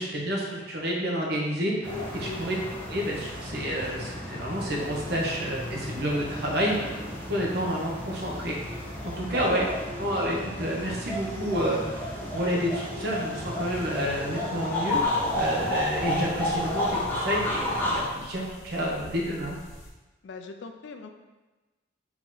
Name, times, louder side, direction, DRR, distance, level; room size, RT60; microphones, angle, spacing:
voice 1, 0.0-2.6 2.9-7.0 7.3-8.5 9.0-9.6 10.0-15.0 15.3-19.6, equal, 55° right, -3 dB, 0.9 m, -29 dB
sound 1, 1.8-18.0, left 1 dB, 10° left, 0.9 m, -32 dB
voice 2, 9.5-9.8 20.2-21.1, left 3 dB, 65° left, 5 dB, 0.4 m, -41 dB
sound 2, 14.9-19.9, equal, 90° left, 1.0 m, -48 dB
4.3 x 2.9 x 3.9 m, 1.2 s
head